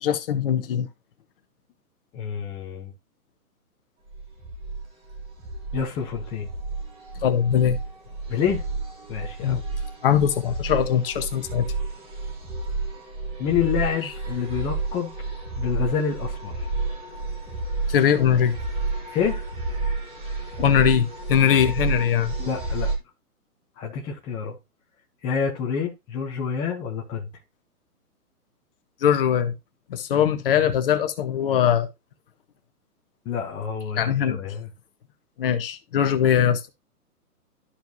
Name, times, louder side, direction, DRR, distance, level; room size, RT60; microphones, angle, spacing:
voice 1, 0.0-0.9 7.2-7.8 9.4-9.6 10.0-11.7 17.9-18.6 20.6-22.3 29.0-29.5 29.9-31.9 34.0-34.4 35.4-36.7, left 9 dB, 35° left, 1.0 m, -21 dB
voice 2, 2.1-2.9 5.7-6.5 8.3-8.6 9.1-9.6 13.4-15.1 15.6-16.7 19.1-19.4 22.4-22.9 23.8-24.6 25.2-27.3 33.2-34.7, left 7 dB, 10° left, 0.7 m, -28 dB
sound 1, 4.1-23.0, right 3 dB, 10° right, 1.4 m, -31 dB
12.5 x 4.6 x 2.7 m
hypercardioid pair, 145°, 47 cm